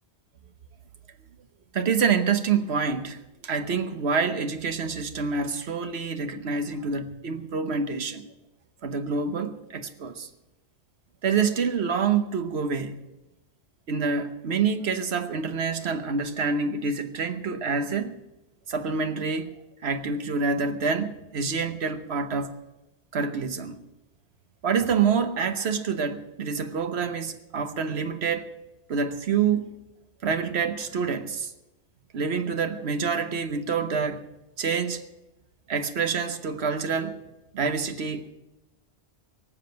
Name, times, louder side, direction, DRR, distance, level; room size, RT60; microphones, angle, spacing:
voice 1, 1.7-8.3 8.8-10.3 11.2-13.1 13.9-18.2 18.7-19.5 19.8-22.6 23.1-23.8 24.6-28.5 28.9-29.7 30.2-31.5 32.1-34.3 34.6-35.0 35.7-37.2 37.5-38.3, right 5 dB, 75° right, 1.3 m, -27 dB
18.5 x 7.4 x 7.9 m
omnidirectional pair, 1.1 m